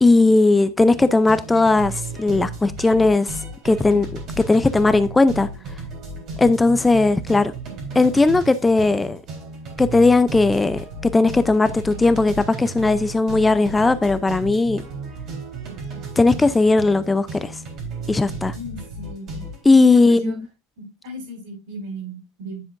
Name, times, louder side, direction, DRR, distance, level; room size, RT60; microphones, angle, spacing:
voice 1, 0.0-3.4 3.6-5.5 6.4-7.5 8.0-9.2 9.8-14.8 16.2-17.6 18.1-18.5 19.7-20.5, left 3 dB, 10° left, 0.5 m, -17 dB
sound 1, 0.9-19.6, right 3 dB, 40° right, 3.8 m, -34 dB
voice 2, 18.5-19.5 19.8-20.4 20.8-22.7, left 1 dB, 70° right, 6.2 m, -35 dB
9.9 x 7.5 x 2.5 m
supercardioid pair, 150°, 0 cm